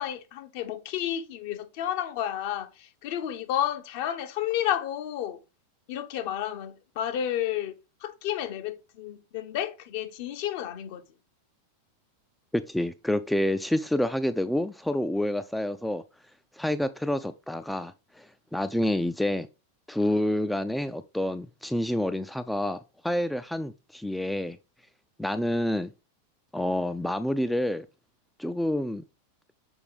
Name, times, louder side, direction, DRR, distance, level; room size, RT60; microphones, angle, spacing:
voice 1, 0.0-5.4 5.9-7.7 8.0-11.1, left 11 dB, 50° left, 0.7 m, -31 dB
voice 2, 12.5-16.0 16.5-19.5 19.9-24.6 25.2-25.9 26.5-27.9 28.4-29.0, left 1 dB, 5° left, 0.3 m, -28 dB
6.3 x 4.7 x 3.4 m
figure-of-eight pair, 90°, 0 cm